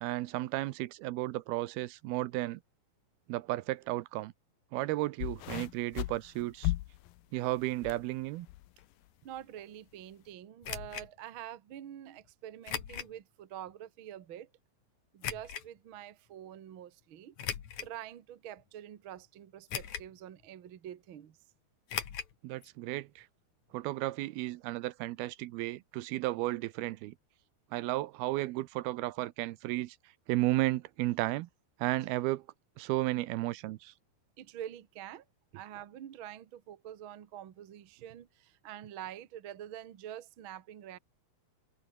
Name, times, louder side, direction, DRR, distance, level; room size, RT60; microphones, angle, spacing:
voice 1, 0.0-2.6 3.3-4.3 4.7-6.7 7.3-8.5 22.4-23.3 23.7-27.1 27.7-30.0 30.3-31.5 31.8-32.5 32.8-33.9, right 18 dB, 80° right, 2.6 m, -33 dB
sound 1, 5.2-8.0 8.4-8.8 9.6-9.7, left 17 dB, 75° left, 2.5 m, -36 dB
voice 2, 9.2-14.5 15.1-17.4 17.8-21.4 34.4-35.2 35.5-41.0, right 11 dB, 60° right, 1.4 m, -46 dB
sound 2, 10.6-11.1 12.6-13.1 13.7-13.8 15.2-15.7 17.4-18.0 18.6-18.7 19.7-20.2 20.4-20.5 21.9-22.3 22.6-22.7 23.0-23.1, left 8 dB, 55° left, 3.2 m, -38 dB
omnidirectional pair, 4.5 m